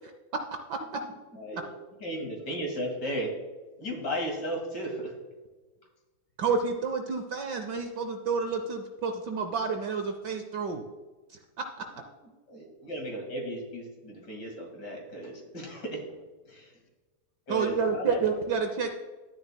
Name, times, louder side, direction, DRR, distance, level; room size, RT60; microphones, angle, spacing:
voice 1, 0.8-1.7 11.9-12.9 16.7-16.8, right 1 dB, 5° right, 1 dB, 0.9 m, -51 dB
voice 2, 1.4-1.7 2.0-3.4 3.8-5.2 12.5-16.0 16.5-16.7 17.5-18.3, equal, 50° left, 1 dB, 2.5 m, -35 dB
voice 3, 6.4-10.8 17.5-18.9, right 5 dB, 65° right, 6 dB, 1.1 m, -29 dB
12.5 x 9.7 x 2.2 m, 1.3 s
omnidirectional pair, 2.4 m